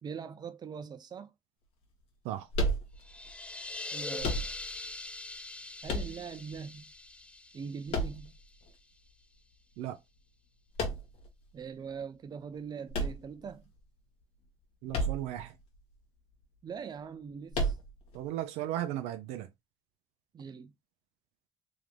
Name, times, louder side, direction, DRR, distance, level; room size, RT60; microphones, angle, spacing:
voice 1, 0.0-1.3 3.9-4.4 5.8-6.9 7.5-8.3 11.5-13.7 16.6-17.8 20.3-20.7, right 6 dB, 40° right, 0.7 m, -42 dB
sound 1, 2.5-3.3 4.2-4.9 5.9-6.6 7.9-8.7 10.8-11.3 12.9-13.8 14.9-15.5 15.7-15.8 17.5-18.2, right 1 dB, 70° left, 1.6 m, -32 dB
sound 2, 3.0-8.6, left 2 dB, 10° left, 0.4 m, -43 dB
voice 2, 14.8-15.5 18.1-19.5, right 12 dB, 85° right, 0.6 m, -36 dB
3.7 x 3.2 x 3.3 m
supercardioid pair, 85°, 11 cm